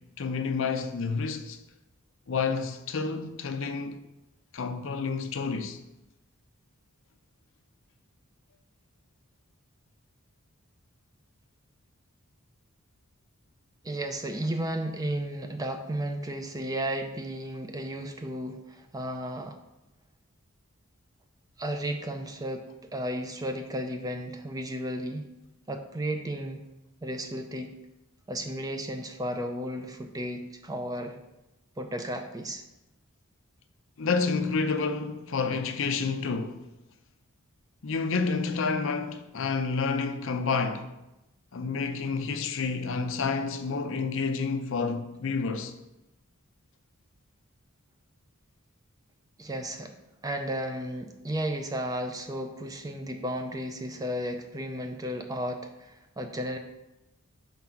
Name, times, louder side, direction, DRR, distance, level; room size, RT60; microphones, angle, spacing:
voice 1, 0.2-1.6 2.3-4.0 4.5-5.8 34.0-36.6 37.8-40.9 41.5-45.7, left 4 dB, 60° left, 0.5 m, -29 dB
voice 2, 13.8-19.6 21.6-25.3 25.7-26.6 27.0-27.7 28.3-31.2 31.8-32.6 49.4-49.9 50.2-56.6, right 1 dB, 15° right, 0.4 m, -34 dB
5.2 x 3.9 x 5.8 m
head